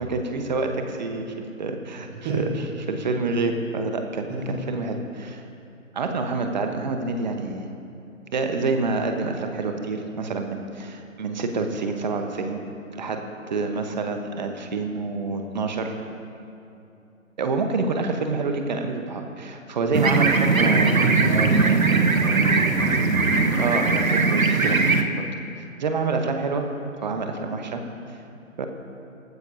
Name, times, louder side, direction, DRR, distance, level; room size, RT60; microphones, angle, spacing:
voice 1, 0.0-2.1 2.9-5.4 5.9-7.7 8.3-12.6 12.9-13.2 13.5-15.9 17.4-21.0 23.6-25.1 25.8-26.7 27.0-27.8 28.6-28.7, right 3 dB, 35° right, 5 dB, 1.1 m, -27 dB
voice 2, 4.3-4.6 20.8-23.6, right 2 dB, 10° right, -4 dB, 0.7 m, -31 dB
sound 1, 19.9-25.0, right 4 dB, 80° right, 1.2 m, -20 dB
17.5 x 15.0 x 2.8 m, 2.7 s
figure-of-eight pair, 145°, 41 cm